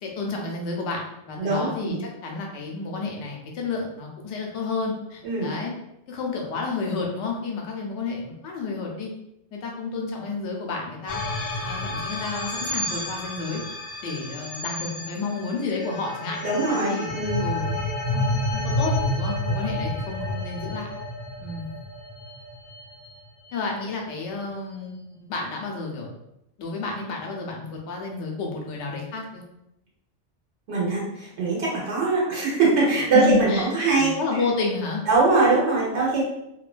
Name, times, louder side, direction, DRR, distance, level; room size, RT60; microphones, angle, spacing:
voice 1, 0.0-5.7 6.1-9.1 9.5-11.2 11.6-13.6 14.0-17.8 18.1-20.9 21.4-21.7 23.5-26.1 26.6-29.4 33.1-35.0, left 4 dB, 80° left, 0 dB, 0.9 m, -31 dB
voice 2, 1.4-2.0 5.2-5.5 16.4-17.4 30.7-34.2 35.1-36.2, right 3 dB, 75° right, -5 dB, 1.2 m, -22 dB
sound 1, 11.1-23.5, left 1 dB, 55° left, 0.6 m, -30 dB
2.7 x 2.2 x 2.4 m, 0.84 s
omnidirectional pair, 1.2 m